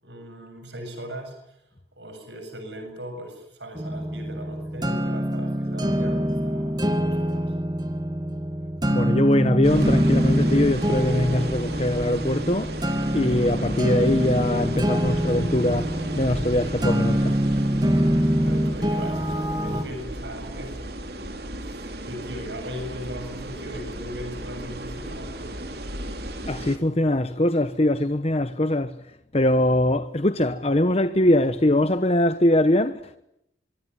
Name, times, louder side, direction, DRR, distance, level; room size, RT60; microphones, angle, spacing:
voice 1, 0.0-1.7 2.0-7.5 18.4-20.8 21.6-25.5, equal, 75° right, 7.4 m, -38 dB
sound 1, 3.7-19.8, equal, 20° right, 2.5 m, -25 dB
voice 2, 8.9-12.9 13.1-17.3 26.4-33.2, left 1 dB, 35° left, 1.0 m, -22 dB
sound 2, 9.6-26.8, right 1 dB, 55° right, 3.6 m, -35 dB
25.0 x 24.5 x 9.7 m
head